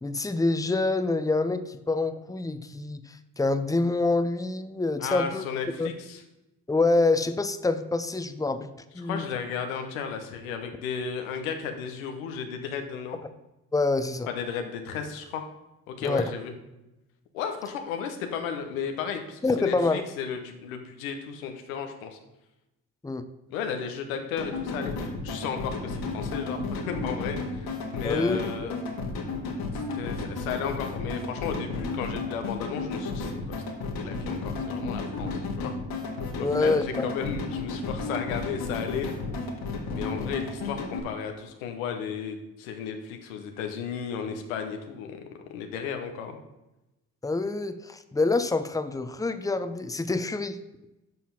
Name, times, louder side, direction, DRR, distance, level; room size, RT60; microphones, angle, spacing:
voice 1, 0.0-5.4 5.8-5.9 6.7-8.7 8.9-9.2 13.7-14.3 16.0-16.3 19.4-20.0 23.0-23.2 28.0-28.4 36.4-37.0 40.1-40.3 47.2-50.6, left 3 dB, 10° left, 10 dB, 0.7 m, -26 dB
voice 2, 5.0-6.2 9.0-13.2 14.3-15.4 15.9-16.5 17.3-22.2 23.5-28.8 29.7-33.6 34.0-35.7 36.5-39.1 39.9-45.2 45.5-46.4, left 7 dB, 90° left, 5 dB, 0.9 m, -34 dB
sound 1, 24.4-41.0, left 3 dB, 65° left, 1.7 m, -33 dB
7.5 x 5.6 x 5.7 m, 0.96 s
hypercardioid pair, 50°, 40 cm